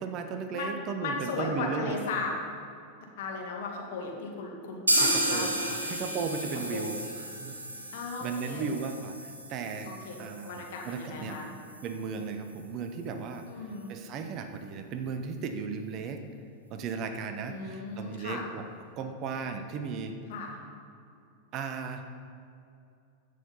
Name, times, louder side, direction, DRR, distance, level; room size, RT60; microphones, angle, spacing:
voice 1, 0.0-2.0 5.0-5.5 5.8-7.0 7.4-7.6 8.2-11.4 11.8-16.2 16.7-18.6 19.0-20.2 21.5-22.0, right 5 dB, 35° right, 7 dB, 1.0 m, -36 dB
voice 2, 1.0-2.3 3.2-5.8 6.7-6.9 7.9-8.7 9.8-10.2 10.4-11.5 13.5-13.9 17.5-18.4 20.3-20.6, left 4 dB, 55° left, 0 dB, 2.1 m, -36 dB
sound 1, 4.9-12.6 12.9-13.0 13.3-13.4 13.8-13.9, right 1 dB, 80° right, 1.4 m, -33 dB
15.0 x 6.7 x 5.5 m, 2.5 s
figure-of-eight pair, 90°, 0 cm